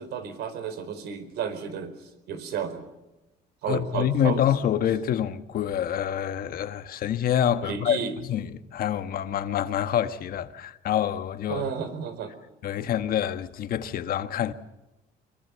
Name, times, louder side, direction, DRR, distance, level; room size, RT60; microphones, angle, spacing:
voice 1, 0.0-2.8 3.6-4.4 7.6-8.1 11.5-12.3, right 7 dB, 75° right, 4.4 m, -32 dB
voice 2, 3.7-8.0 8.3-11.6 12.6-14.5, left 10 dB, 60° left, 1.4 m, -26 dB
25.0 x 22.5 x 7.0 m
cardioid pair, 110°, 17 cm